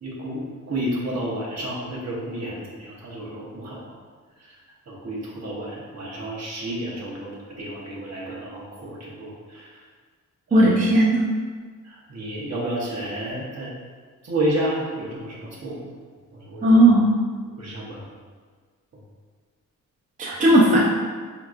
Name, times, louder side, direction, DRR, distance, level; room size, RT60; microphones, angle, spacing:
voice 1, 0.0-3.9 4.9-7.3 7.6-9.7 10.5-10.8 11.8-13.7 14.2-15.9 16.4-16.8 17.6-18.0, right 1 dB, 50° right, -4 dB, 1.0 m, -31 dB
voice 2, 10.5-11.2 16.6-17.1 20.2-20.8, right 1 dB, 25° right, -6 dB, 0.5 m, -16 dB
4.6 x 2.9 x 2.4 m, 1.5 s
wide cardioid pair, 115°, 33 cm